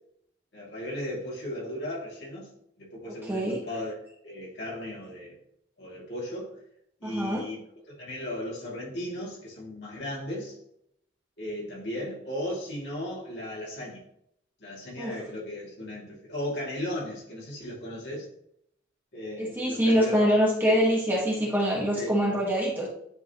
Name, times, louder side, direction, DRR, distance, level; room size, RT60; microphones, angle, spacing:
voice 1, 0.5-2.5 2.8-3.9 4.2-5.4 5.8-6.5 7.0-7.6 7.9-10.6 11.4-14.0 14.6-18.3 19.1-20.2 20.6-20.8 21.9-22.2, left 1 dB, 65° left, -5 dB, 2.5 m, -36 dB
voice 2, 3.2-3.6 7.0-7.4 15.0-15.1 19.4-22.9, equal, 10° right, -4 dB, 1.6 m, -24 dB
10.5 x 3.8 x 3.0 m, 0.73 s
head